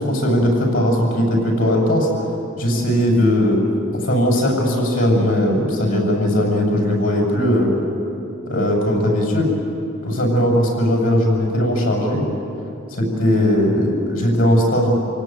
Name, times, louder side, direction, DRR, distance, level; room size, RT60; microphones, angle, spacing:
voice 1, 0.0-2.1 2.6-3.6 3.9-7.8 8.5-9.5 10.0-12.3 12.9-14.9, equal, 90° left, -1 dB, 7.4 m, -18 dB
28.5 x 18.0 x 9.2 m, 2.8 s
head